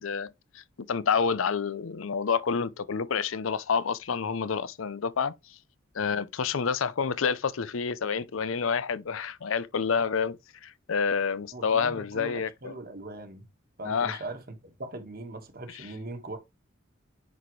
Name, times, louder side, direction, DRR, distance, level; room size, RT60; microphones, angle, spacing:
voice 1, 0.0-5.6 5.9-10.4 10.6-12.7 13.9-14.2 15.7-15.8, left 6 dB, 80° left, 0.6 m, -28 dB
voice 2, 11.5-13.5 13.8-16.4, right 2 dB, 45° right, 1.5 m, -40 dB
10.0 x 4.2 x 3.1 m
head